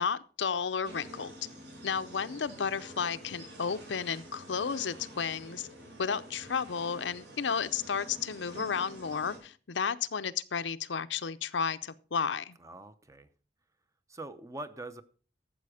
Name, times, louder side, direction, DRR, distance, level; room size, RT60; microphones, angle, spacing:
voice 1, 0.0-1.3 1.8-5.7 6.0-12.6, left 6 dB, 85° left, 0.6 m, -32 dB
sound 1, 0.8-9.4, right 1 dB, 70° right, 7.1 m, -48 dB
voice 2, 12.6-13.3 14.1-15.0, right 2 dB, 15° right, 0.7 m, -43 dB
13.0 x 7.8 x 4.9 m
head